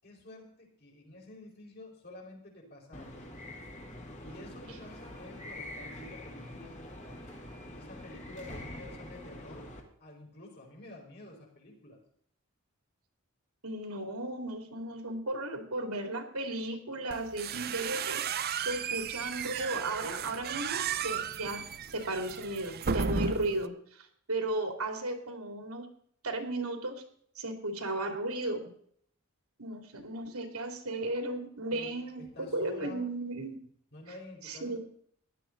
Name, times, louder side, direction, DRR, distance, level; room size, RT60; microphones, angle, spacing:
voice 1, 0.0-3.3 4.2-7.3 7.7-9.7 10.0-12.0 31.7-33.1 33.9-34.8, left 1 dB, 45° left, -1 dB, 4.8 m, -50 dB
sound 1, 2.9-9.8, left 1 dB, 30° left, 2.4 m, -45 dB
voice 2, 13.6-21.6 21.9-25.9 26.2-26.9 27.4-28.7 29.6-33.6 34.4-34.8, right 2 dB, 75° right, 4 dB, 2.7 m, -35 dB
sound 2, 17.1-23.7, right 6 dB, 45° right, 0.6 m, -34 dB
16.0 x 11.5 x 4.0 m, 0.63 s
head